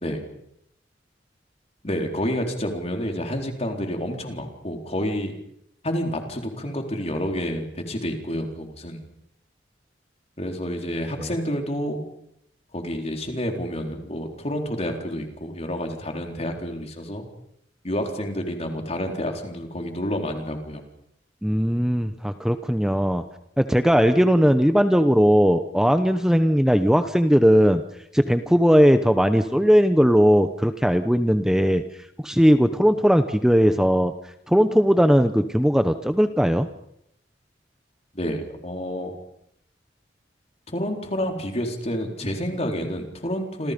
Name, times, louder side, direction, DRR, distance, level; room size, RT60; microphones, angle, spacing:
voice 1, 1.8-5.3 5.8-9.0 10.4-12.0 12.7-17.3 17.8-20.8 38.1-39.1 40.7-43.7, equal, 35° left, 3 dB, 4.1 m, -29 dB
voice 2, 21.4-23.2 23.6-27.8 28.1-31.8 32.2-36.7, equal, 5° right, 9 dB, 0.9 m, -18 dB
28.0 x 27.0 x 5.3 m, 0.75 s
head